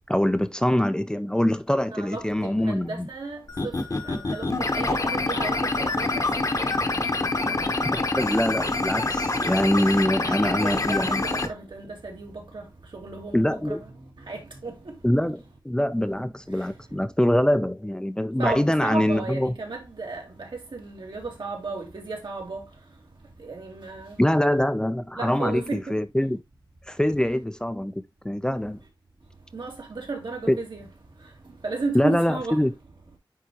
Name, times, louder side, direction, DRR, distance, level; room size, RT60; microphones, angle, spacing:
voice 1, 0.1-3.1 7.4-11.2 13.3-13.8 15.0-19.5 24.2-26.4 26.9-28.8 30.5-30.6 31.9-32.7, left 1 dB, 10° left, 0.5 m, -24 dB
voice 2, 1.9-3.7 4.0-6.3 10.2-12.7 12.9-13.8 14.3-14.9 18.4-22.7 23.4-24.2 25.1-25.9 29.5-30.9 31.6-32.6, right 3 dB, 70° right, 2.3 m, -34 dB
sound 1, 3.5-11.5, left 2 dB, 45° left, 1.0 m, -26 dB
9.3 x 3.6 x 2.9 m
wide cardioid pair, 90°, 8 cm